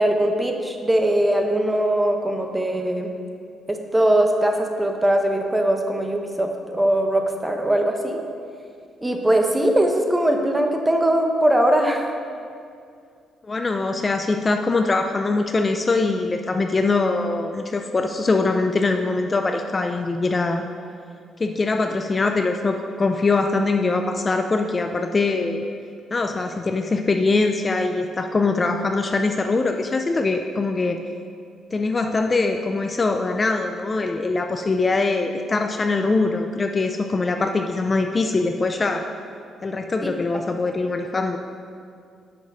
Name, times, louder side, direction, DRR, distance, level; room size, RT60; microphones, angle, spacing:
voice 1, 0.0-3.1 3.7-8.2 9.0-12.1 40.0-40.4, right 1 dB, 10° right, 3 dB, 0.9 m, -21 dB
voice 2, 13.4-20.6 21.4-25.6 26.1-31.0 31.7-39.1 39.6-41.4, left 3 dB, 30° left, 5 dB, 0.4 m, -22 dB
7.4 x 6.2 x 5.4 m, 2.3 s
cardioid pair, 90°, 0 cm